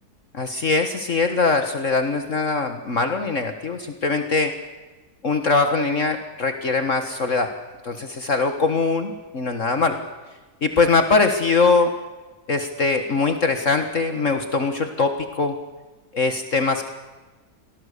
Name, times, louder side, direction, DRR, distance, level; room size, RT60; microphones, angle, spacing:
voice 1, 0.3-4.5 5.2-7.5 7.8-10.0 10.6-11.9 12.5-15.6 16.1-16.9, left 4 dB, 55° left, 7 dB, 1.9 m, -22 dB
24.5 x 18.5 x 8.4 m, 1.2 s
omnidirectional pair, 1.7 m